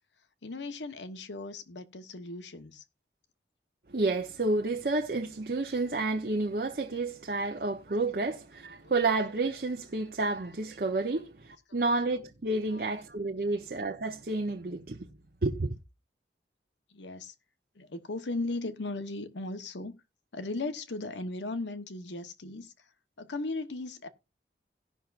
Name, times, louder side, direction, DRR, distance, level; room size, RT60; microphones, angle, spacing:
voice 1, 0.4-2.8 8.8-8.9 12.7-12.9 13.3-13.4 16.9-17.3 17.8-19.9 20.3-22.7 23.2-24.1, left 2 dB, 90° left, 1.0 m, -37 dB
voice 2, 3.9-15.1 15.4-15.8, right 2 dB, 55° right, 0.8 m, -30 dB
17.5 x 5.9 x 2.5 m
head